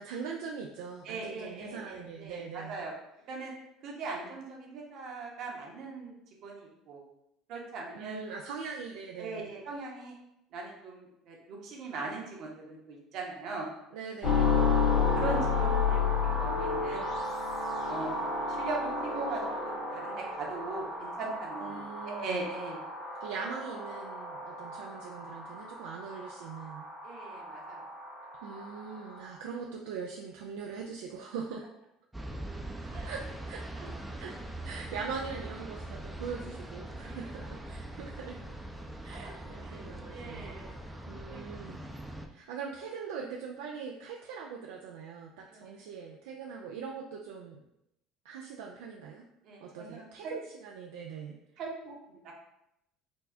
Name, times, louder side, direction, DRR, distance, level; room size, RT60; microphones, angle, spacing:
voice 1, 0.0-2.8 7.9-9.5 13.9-14.8 21.6-22.5 23.2-26.9 28.4-31.7 32.8-33.6 34.2-34.3 34.6-38.4 39.0-41.8 42.3-47.6 48.2-49.2 49.6-51.4, right 5 dB, 80° right, 0 dB, 0.3 m, -42 dB
voice 2, 1.0-2.9 3.3-3.5 3.8-6.1 6.4-7.0 7.5-8.2 9.2-10.1 10.5-13.7 15.1-17.0 17.9-22.8 27.0-27.8 32.9-33.1 33.7-33.9 37.0-37.2 39.1-39.3 39.6-40.7 41.3-41.5 45.5-45.8 49.4-50.3 51.6-52.3, right 3 dB, 60° right, -1 dB, 1.0 m, -40 dB
sound 1, 14.2-29.3, left 4 dB, 60° left, 1.5 m, -32 dB
sound 2, 32.1-42.3, right 1 dB, 5° right, 0.5 m, -42 dB
4.4 x 2.1 x 2.7 m, 0.82 s
supercardioid pair, 85°, 0 cm